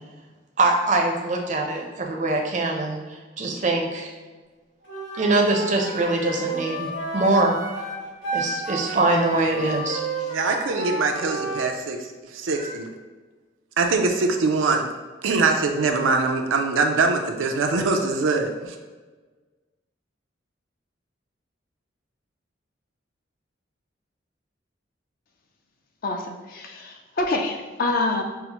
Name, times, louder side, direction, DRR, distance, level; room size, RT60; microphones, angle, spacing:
voice 1, 0.6-4.1 5.1-7.6 8.3-10.0 12.5-12.8, right 2 dB, 40° right, 1 dB, 0.5 m, -23 dB
Wind instrument woodwind instrument, 4.9-11.7, right 1 dB, 75° left, 1.0 m, -31 dB
voice 2, 10.3-12.1 12.3-12.9 13.8-14.9 15.2-18.7, right 3 dB, 90° right, 4 dB, 0.4 m, -23 dB
voice 3, 26.0-28.2, left 2 dB, 45° left, 3 dB, 0.4 m, -26 dB
5.5 x 2.0 x 2.9 m, 1.3 s
head